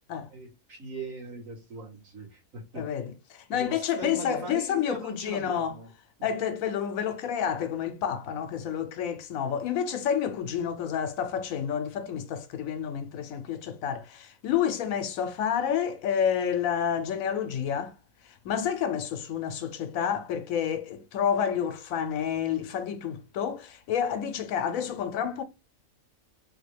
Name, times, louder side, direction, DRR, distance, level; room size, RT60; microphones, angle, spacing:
voice 1, 0.3-2.9 3.5-5.9, right 3 dB, 75° right, 1.9 m, -40 dB
voice 2, 2.7-5.8 6.2-17.9 18.2-25.4, left 8 dB, 80° left, 1.0 m, -29 dB
3.6 x 2.2 x 3.2 m
omnidirectional pair, 1.4 m